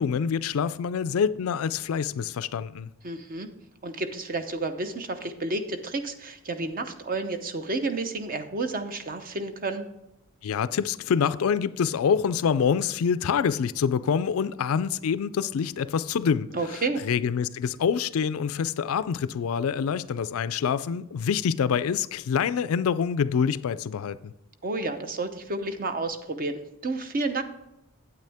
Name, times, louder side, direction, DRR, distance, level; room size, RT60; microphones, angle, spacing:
voice 1, 0.0-2.9 10.4-24.3, left 7 dB, 70° left, 0.4 m, -26 dB
voice 2, 3.0-3.5 3.8-9.9 16.5-17.0 24.6-27.4, right 3 dB, 40° right, 0.8 m, -31 dB
9.1 x 8.6 x 3.5 m
head